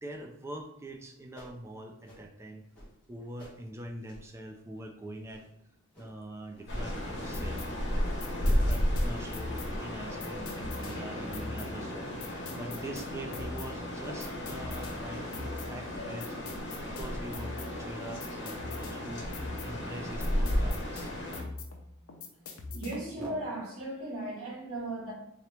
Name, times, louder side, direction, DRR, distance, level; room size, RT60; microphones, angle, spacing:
voice 1, 0.0-2.6 3.1-5.5 6.0-7.6 8.4-16.3 16.8-19.3 19.6-21.1, right 1 dB, 10° right, 4 dB, 0.4 m, -43 dB
sound 1, 1.3-1.6 2.0-2.2 2.7-2.9 3.4-3.6 4.0-4.3 4.8-4.9 5.3-5.5 5.9-6.1 6.5-6.7 7.1-7.4 7.9-8.1 8.6-8.8 9.3-9.5 9.9-10.1 10.6-11.1 11.5-11.6 12.0-12.2 12.6-12.8 13.3-13.7 14.2-14.3, equal, 5° left, 1.4 m, -51 dB
sound 2, 6.7-21.4, equal, 55° left, 1.1 m, -33 dB
sound 3, 7.3-23.2, left 3 dB, 70° left, 0.6 m, -43 dB
voice 2, 22.7-25.1, right 1 dB, 85° right, -2 dB, 1.2 m, -36 dB
3.7 x 2.9 x 3.3 m, 0.84 s
head